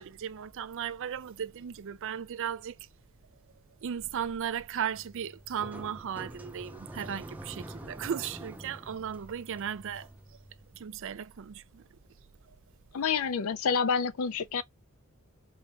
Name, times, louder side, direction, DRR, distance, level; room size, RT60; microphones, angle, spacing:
voice 1, 0.0-2.8 3.8-10.1 10.7-11.8, right 8 dB, 60° right, 0.4 m, -36 dB
sound 1, 4.9-10.8, right 1 dB, 5° right, 0.5 m, -46 dB
voice 2, 12.9-14.6, left 6 dB, 65° left, 0.4 m, -28 dB
4.5 x 2.3 x 2.8 m
head